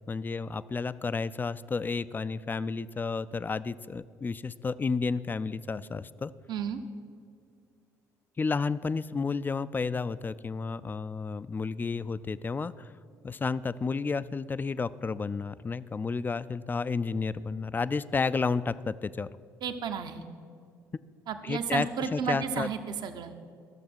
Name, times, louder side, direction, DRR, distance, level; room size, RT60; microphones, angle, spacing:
voice 1, 0.1-6.3 8.4-12.9 13.2-19.3 21.4-22.7, left 4 dB, 20° left, 16 dB, 0.3 m, -31 dB
voice 2, 6.5-6.8 19.6-20.2 21.3-23.4, right 7 dB, 50° right, 8 dB, 0.8 m, -33 dB
13.5 x 6.7 x 6.0 m, 2.3 s
figure-of-eight pair, 50°, 9 cm